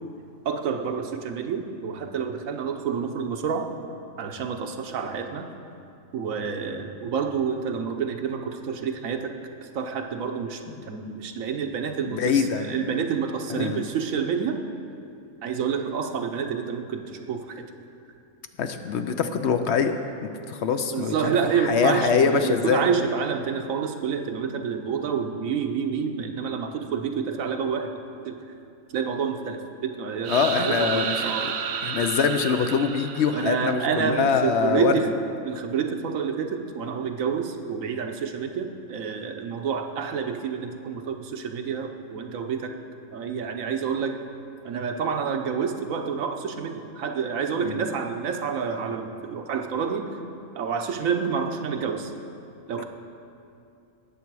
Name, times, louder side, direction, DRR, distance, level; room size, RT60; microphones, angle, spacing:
voice 1, 0.4-3.7 4.2-5.5 6.1-9.3 9.7-10.6 10.9-14.6 15.4-17.6 20.9-27.9 28.2-28.4 28.9-31.5 33.3-35.1 35.4-42.7 43.1-44.2 44.6-50.2 50.5-52.1 52.7-52.8, right 6 dB, 80° right, 5 dB, 1.2 m, -28 dB
voice 2, 12.1-12.8 13.5-13.9 18.6-20.0 20.2-22.8 30.3-31.5 31.8-34.9 47.6-47.8, left 6 dB, 65° left, 8 dB, 0.8 m, -24 dB
sound 1, 30.2-34.1, right 7 dB, 65° right, 0.8 m, -31 dB
18.0 x 6.9 x 4.7 m, 2.6 s
omnidirectional pair, 1.4 m